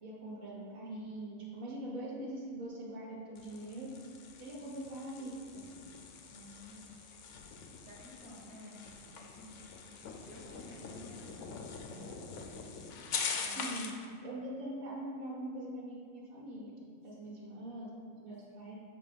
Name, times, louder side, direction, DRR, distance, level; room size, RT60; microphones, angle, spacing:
voice 1, 0.0-3.9 4.4-5.6 13.5-13.9 14.2-16.7 17.0-18.8, right 1 dB, 80° right, -4 dB, 1.6 m, -43 dB
sound 1, 3.3-14.1, left 5 dB, 70° left, 0.9 m, -43 dB
voice 2, 6.3-7.1 7.8-8.8 9.1-12.2 13.3-14.1 18.5-18.8, left 1 dB, 30° right, -7 dB, 1.5 m, -53 dB
7.5 x 2.6 x 5.0 m, 2.2 s
omnidirectional pair, 1.4 m